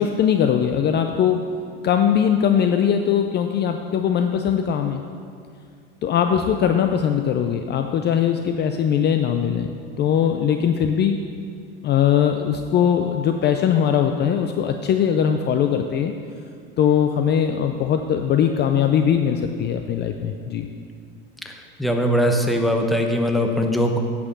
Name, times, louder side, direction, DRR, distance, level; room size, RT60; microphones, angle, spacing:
voice 1, 0.0-1.4 1.8-5.0 6.0-9.7 10.0-11.2 11.8-16.1 16.8-20.7, left 8 dB, 35° left, 6 dB, 0.5 m, -20 dB
voice 2, 21.4-24.0, equal, ahead, 3 dB, 0.9 m, -21 dB
9.8 x 6.0 x 6.7 m, 2.3 s
supercardioid pair, 120°, 31 cm